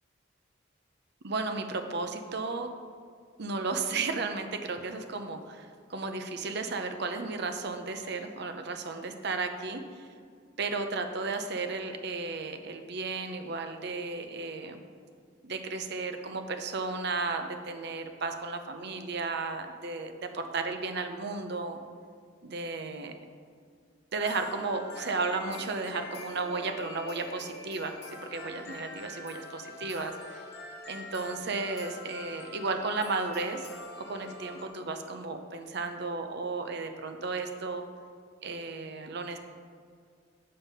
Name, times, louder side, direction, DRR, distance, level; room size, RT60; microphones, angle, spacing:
voice 1, 1.2-2.7 3.4-10.1 10.6-14.8 15.4-21.8 22.4-23.1 24.1-28.0 28.3-30.4 30.9-33.7 34.1-37.8 38.4-39.4, right 3 dB, 60° right, 6 dB, 0.7 m, -34 dB
sound 1, 24.2-34.7, left 2 dB, 60° left, 1.1 m, -44 dB
7.3 x 5.4 x 5.5 m, 2.2 s
head